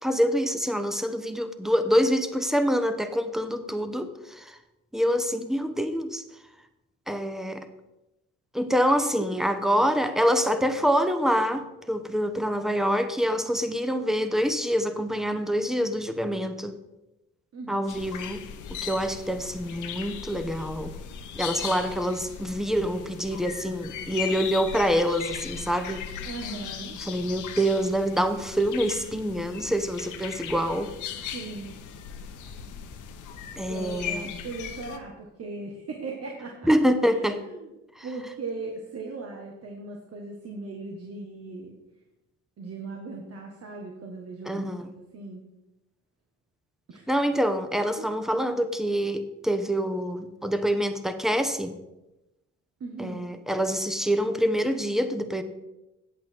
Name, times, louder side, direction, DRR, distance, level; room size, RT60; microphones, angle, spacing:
voice 1, 0.0-4.6 4.9-6.2 7.1-7.7 8.5-16.8 17.7-21.0 21.3-26.0 27.0-30.9 31.2-31.3 33.6-34.3 36.6-37.4 38.0-38.1 44.5-44.9 47.1-51.7 53.0-55.4, equal, ahead, 9 dB, 0.9 m, -26 dB
voice 2, 17.5-18.0 26.2-27.0 31.3-31.7 33.7-37.7 38.0-41.7 42.6-45.4 46.9-47.1 48.0-48.1 52.8-53.3, right 3 dB, 55° right, 0 dB, 1.5 m, -38 dB
sound 1, 17.9-35.0, left 8 dB, 80° left, 1.0 m, -38 dB
8.4 x 8.3 x 4.5 m, 0.96 s
cardioid pair, 90°, 30 cm